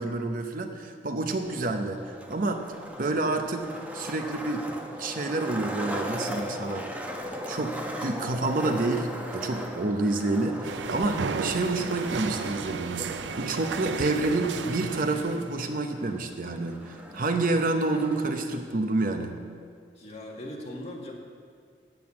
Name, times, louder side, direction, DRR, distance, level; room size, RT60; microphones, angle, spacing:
voice 1, 0.0-2.6 3.0-4.7 5.0-6.9 7.5-13.1 13.4-19.4, right 2 dB, 50° right, 5 dB, 0.8 m, -28 dB
Skateboard, 1.4-18.4, equal, 10° right, 1.0 m, -39 dB
sound 1, 10.6-15.6, right 5 dB, 85° right, 0.5 m, -34 dB
voice 2, 20.0-21.1, left 1 dB, 35° left, -2 dB, 2.0 m, -39 dB
9.1 x 7.9 x 8.5 m, 2.1 s
head